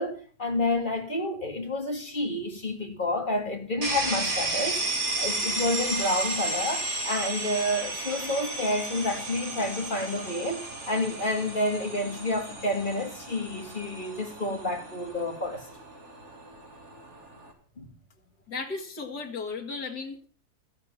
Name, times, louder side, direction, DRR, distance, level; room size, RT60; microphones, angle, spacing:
voice 1, 0.0-4.8 5.2-15.6 17.8-17.9, left 1 dB, 30° left, 2.3 m, -29 dB
sound 1, 3.8-17.5, right 2 dB, 45° right, 3.3 m, -33 dB
voice 2, 18.5-20.3, left 4 dB, 85° left, 2.5 m, -35 dB
13.5 x 11.0 x 5.5 m
omnidirectional pair, 1.7 m